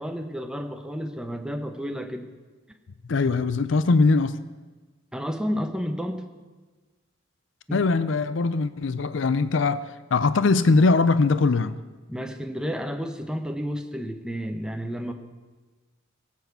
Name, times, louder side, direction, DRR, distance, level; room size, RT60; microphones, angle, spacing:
voice 1, 0.0-2.3 5.1-6.2 7.7-7.8 12.1-15.1, equal, 5° right, 1.0 m, -31 dB
voice 2, 3.1-4.4 7.7-11.8, left 3 dB, 65° left, 0.5 m, -21 dB
17.5 x 8.3 x 6.8 m
head